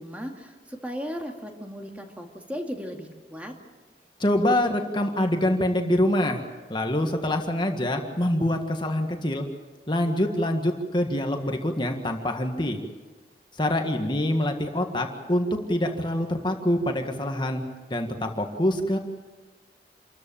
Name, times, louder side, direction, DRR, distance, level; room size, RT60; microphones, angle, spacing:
voice 1, 0.0-3.5, equal, 10° right, 2 dB, 2.3 m, -36 dB
voice 2, 4.2-6.4 6.7-9.5 9.9-12.8 13.6-17.6 17.9-19.0, left 1 dB, 25° left, 4 dB, 1.7 m, -25 dB
27.0 x 14.0 x 8.9 m, 1.3 s
head